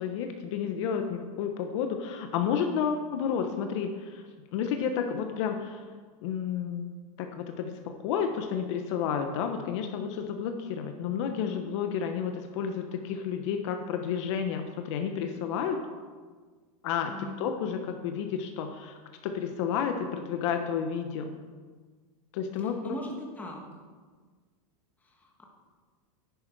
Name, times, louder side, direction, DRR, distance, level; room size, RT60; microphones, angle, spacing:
voice 1, 0.0-4.2 4.5-5.8 6.2-6.9 7.2-15.8 16.8-17.1 17.4-19.0 19.2-21.3 22.3-22.9, left 7 dB, 50° left, 5 dB, 1.0 m, -31 dB
voice 2, 17.0-17.4 22.6-23.6 25.0-25.4, left 1 dB, 10° left, -1 dB, 1.6 m, -40 dB
10.5 x 10.5 x 4.6 m, 1.5 s
supercardioid pair, 160°, 19 cm